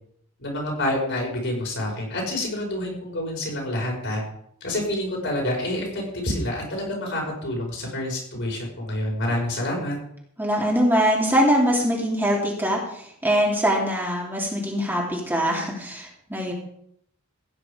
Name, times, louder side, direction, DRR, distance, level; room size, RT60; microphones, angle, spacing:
voice 1, 0.4-4.2 4.6-10.0, left 1 dB, 60° left, -1 dB, 5.5 m, -28 dB
voice 2, 10.4-16.5, equal, 10° right, -2 dB, 3.0 m, -23 dB
16.0 x 9.8 x 5.1 m, 0.71 s
head